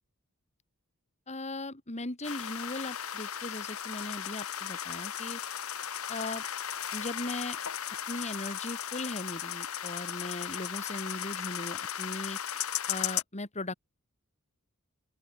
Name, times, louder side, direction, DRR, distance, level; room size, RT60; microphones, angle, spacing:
voice 1, 1.3-5.4 6.1-6.4 6.9-7.6 8.1-12.4 12.9-13.7, left 2 dB, 30° left, 2.7 m, -38 dB
sound 1, 2.2-13.2, left 9 dB, 75° left, 1.6 m, -36 dB
open air
head